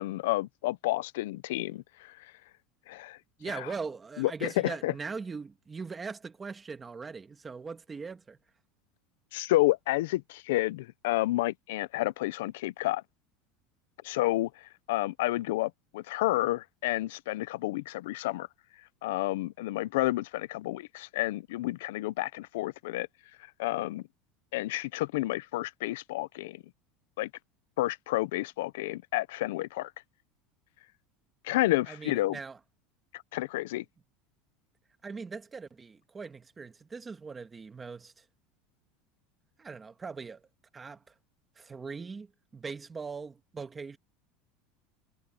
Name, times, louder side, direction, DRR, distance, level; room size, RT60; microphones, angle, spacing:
voice 1, 0.0-2.1 2.9-3.2 3.5-3.7 4.2-4.9 9.3-13.0 14.0-14.5 14.9-18.5 19.0-23.1 23.6-24.0 24.5-26.6 27.2-27.3 27.8-29.9 31.4-32.4 33.3-33.8, left 18 dB, 85° left, 0.6 m, -30 dB
voice 2, 3.4-8.4 31.9-32.6 35.0-38.2 39.6-40.4 40.7-41.1 41.6-42.3 42.5-44.0, right 5 dB, 15° right, 1.6 m, -40 dB
supercardioid pair, 170°, 0 cm